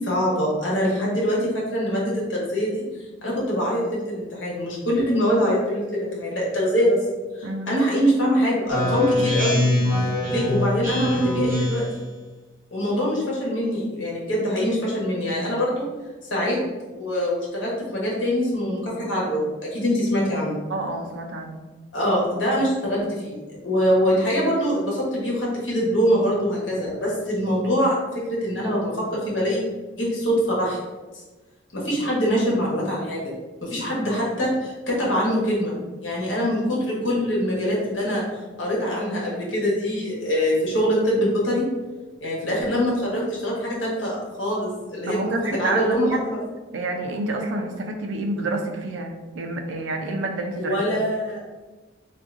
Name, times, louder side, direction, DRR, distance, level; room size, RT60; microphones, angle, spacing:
voice 1, 0.0-2.8 3.2-7.0 7.4-9.6 10.3-11.8 12.7-15.8 16.3-16.6 16.9-19.4 19.7-20.6 21.9-29.6 30.0-30.8 31.7-33.2 33.6-35.7 36.0-38.2 38.6-41.6 42.2-45.3 45.5-46.4 50.6-51.4, equal, 85° left, -5 dB, 1.1 m, -24 dB
voice 2, 7.4-7.8 20.7-21.5 45.0-46.3 46.7-50.8, right 2 dB, 85° right, 4 dB, 0.4 m, -28 dB
Speech synthesizer, 8.7-12.0, left 1 dB, 45° right, 1.0 m, -23 dB
3.7 x 2.5 x 2.5 m, 1.2 s
head